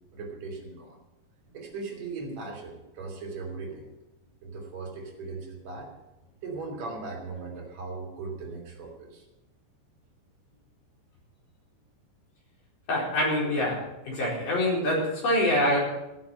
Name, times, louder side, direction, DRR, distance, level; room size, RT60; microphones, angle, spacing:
voice 1, 0.1-1.0 1.5-3.9 4.4-5.9 6.4-9.2, right 3 dB, 45° right, 0 dB, 3.8 m, -38 dB
voice 2, 12.9-13.8 14.0-15.8, left 1 dB, 50° left, -4 dB, 5.8 m, -25 dB
15.0 x 7.4 x 8.7 m, 0.96 s
omnidirectional pair, 5.0 m